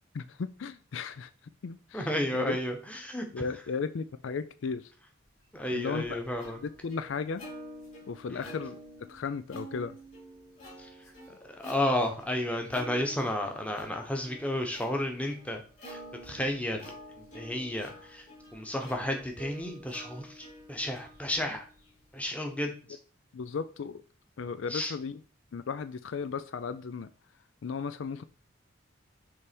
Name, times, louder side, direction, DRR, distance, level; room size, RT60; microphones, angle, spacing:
voice 1, 0.1-2.6 3.3-4.9 5.7-6.2 6.6-7.4 8.1-8.8 9.1-10.0 23.3-24.0 24.4-25.2 25.5-27.1 27.6-28.2, left 5 dB, 65° left, 12 dB, 0.4 m, -35 dB
voice 2, 1.9-3.4 5.5-6.6 8.3-8.5 10.8-10.9 11.4-16.9 17.3-18.3 18.5-21.6 22.1-22.7 24.7-24.9, left 1 dB, 5° left, 3 dB, 1.1 m, -32 dB
Plucked string instrument, 5.5-22.2, equal, 35° left, 3.7 m, -49 dB
6.9 x 3.4 x 5.2 m, 0.39 s
head